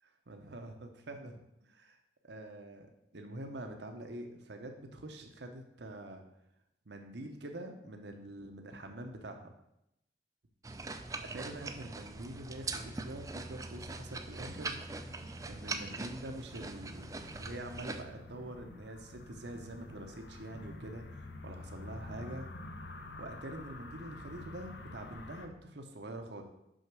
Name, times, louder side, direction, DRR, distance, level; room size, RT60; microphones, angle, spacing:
voice 1, 0.3-2.0 2.2-2.9 3.1-6.2 6.9-9.5 11.2-14.8 15.4-17.1 17.4-22.5 23.2-26.4, right 1 dB, 70° right, 4 dB, 0.8 m, -45 dB
sound 1, 10.6-18.0, right 3 dB, 20° right, 0.4 m, -42 dB
sound 2, 11.3-25.5, left 2 dB, 70° left, 0.9 m, -50 dB
6.4 x 5.5 x 6.1 m, 0.83 s
head